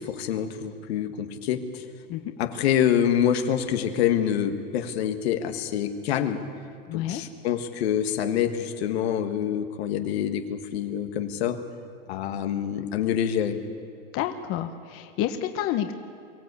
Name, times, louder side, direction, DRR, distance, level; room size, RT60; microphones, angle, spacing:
voice 1, 0.0-1.8 2.4-6.4 6.9-11.6 12.1-13.6, left 9 dB, 85° left, 6 dB, 1.7 m, -26 dB
voice 2, 6.9-7.2 14.1-15.9, left 11 dB, 45° left, 7 dB, 1.1 m, -29 dB
23.5 x 16.0 x 8.3 m, 2.4 s
supercardioid pair, 135°, 31 cm